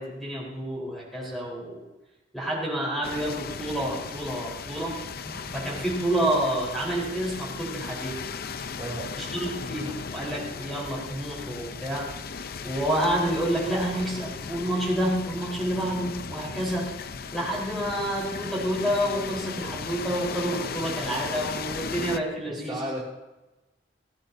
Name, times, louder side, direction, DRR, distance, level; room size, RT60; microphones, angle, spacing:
voice 1, 0.0-1.8 2.3-5.0 5.2-8.2 9.2-12.1 12.6-16.9 17.3-22.8, right 1 dB, ahead, -5 dB, 4.1 m, -29 dB
sound 1, 3.0-22.2, left 5 dB, 55° left, 0.6 m, -37 dB
voice 2, 8.8-9.1 22.5-23.1, right 1 dB, 20° right, -6 dB, 2.6 m, -34 dB
17.5 x 16.5 x 2.7 m, 1.1 s
head